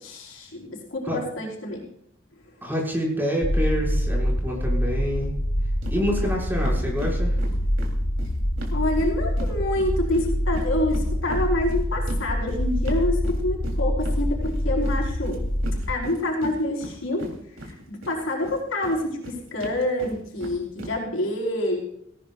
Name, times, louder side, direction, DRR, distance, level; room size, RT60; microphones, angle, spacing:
voice 1, 0.0-1.9 2.3-2.5 5.9-6.3 8.7-15.4 15.9-21.8, left 1 dB, 80° left, -2 dB, 4.9 m, -27 dB
voice 2, 2.6-5.3 5.9-7.4, equal, 10° right, -3 dB, 6.2 m, -27 dB
sound 1, 3.4-16.0, equal, 40° left, 0.8 m, -25 dB
sound 2, 5.8-6.0 6.2-6.4 6.6-9.5 9.8-18.1 18.4-20.9, right 1 dB, 90° right, 3.7 m, -38 dB
19.5 x 17.5 x 2.6 m, 0.73 s
head